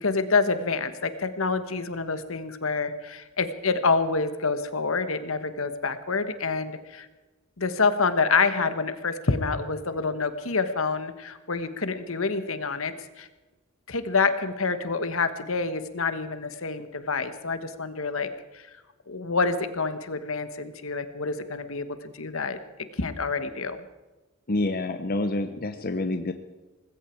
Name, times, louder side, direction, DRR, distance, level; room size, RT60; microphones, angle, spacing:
voice 1, 0.0-7.1 7.6-13.3 13.9-18.3 18.5-18.6 19.1-22.6 23.0-23.8, left 4 dB, 70° left, 11 dB, 1.4 m, -27 dB
voice 2, 24.5-26.3, left 2 dB, 45° left, 8 dB, 0.9 m, -27 dB
19.5 x 16.0 x 4.6 m, 1.2 s
head